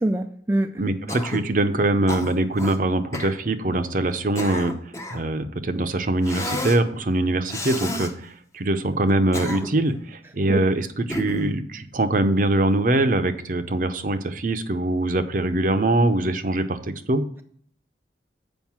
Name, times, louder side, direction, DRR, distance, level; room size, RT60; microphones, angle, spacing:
voice 1, 0.0-0.7 10.5-10.6, right 1 dB, 10° right, 5 dB, 0.3 m, -23 dB
voice 2, 0.8-4.7 5.1-17.2, right 2 dB, 45° right, 10 dB, 0.6 m, -23 dB
Cough, 1.1-1.5 2.1-2.8 3.1-3.4 4.1-5.3 6.2-6.8 7.5-8.1 9.1-9.9 11.1-11.6, left 1 dB, 15° left, 0.7 m, -31 dB
7.3 x 5.2 x 6.0 m, 0.62 s
head